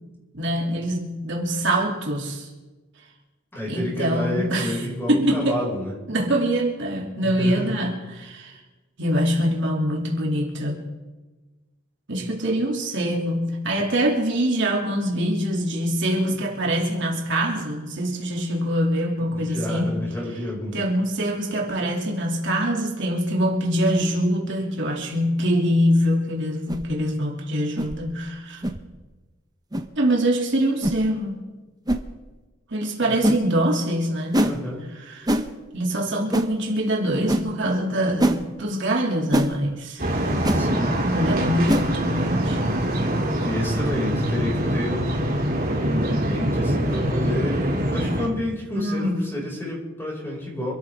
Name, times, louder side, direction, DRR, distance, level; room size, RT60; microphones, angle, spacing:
voice 1, 0.3-2.5 3.7-4.8 5.1-5.6 6.1-8.5 9.0-10.9 12.1-20.0 20.7-28.6 30.0-31.5 32.7-34.5 35.0-35.4 35.7-40.1 41.0-42.6 48.7-49.2, equal, 65° right, -1 dB, 2.8 m, -24 dB
voice 2, 3.5-5.9 7.2-7.7 19.3-20.8 33.0-33.1 34.4-34.8 40.5-41.0 43.4-45.4 45.8-50.7, left 1 dB, 10° left, -4 dB, 5.9 m, -29 dB
sound 1, 26.7-26.9 27.8-28.0 28.6-28.8 29.7-29.9 30.8-31.0 31.9-32.0 33.2-33.4 34.3-34.6 35.3-35.5 36.3-36.5 37.3-37.5 38.2-38.4 39.3-39.5 40.4-40.6 41.7-41.9, right 1 dB, 20° right, 0.9 m, -22 dB
sound 2, 40.0-48.3, right 1 dB, 45° right, 2.8 m, -24 dB
27.0 x 13.5 x 3.7 m, 1.2 s
head